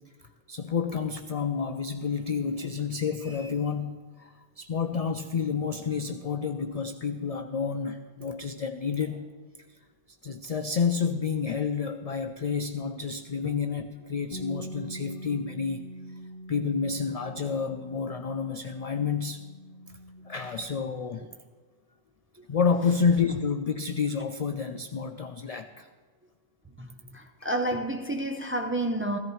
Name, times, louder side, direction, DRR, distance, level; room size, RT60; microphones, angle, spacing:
voice 1, 0.5-9.2 9.7-9.8 10.2-15.8 16.5-19.4 20.3-21.3 22.5-25.9, left 6 dB, 70° left, 0.3 m, -29 dB
Bass guitar, 14.3-20.6, equal, 35° left, 0.8 m, -44 dB
voice 2, 27.1-29.2, right 1 dB, 15° right, 0.4 m, -30 dB
15.5 x 14.0 x 3.1 m
omnidirectional pair, 1.2 m